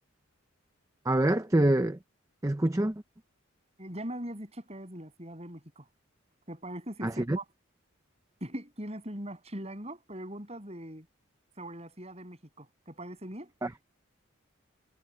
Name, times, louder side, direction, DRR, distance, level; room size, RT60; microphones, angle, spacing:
voice 1, 1.1-2.0 2.4-2.9 7.0-7.4 13.6-13.7, right 1 dB, 15° right, 0.6 m, -25 dB
voice 2, 3.8-5.8 6.5-7.4 8.4-11.1 11.6-13.5, right 1 dB, 30° right, 7.6 m, -41 dB
head